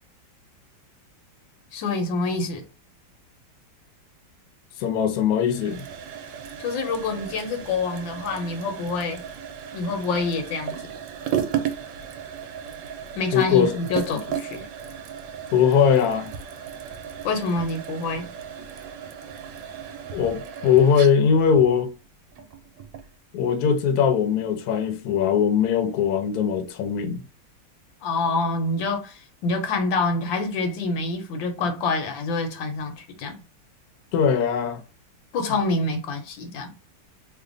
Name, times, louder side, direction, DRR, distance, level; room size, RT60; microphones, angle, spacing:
voice 1, 1.7-2.6 6.6-9.3 9.7-10.9 13.1-14.7 17.2-18.3 28.0-33.4 35.3-36.7, left 3 dB, 85° left, 1.5 m, -26 dB
voice 2, 4.8-5.9 13.3-13.7 15.5-16.3 20.1-21.9 23.3-27.2 34.1-34.8, left 7 dB, 65° left, 1.0 m, -20 dB
sound 1, 5.4-23.1, right 8 dB, 75° right, 1.3 m, -35 dB
3.3 x 2.2 x 3.7 m
omnidirectional pair, 2.0 m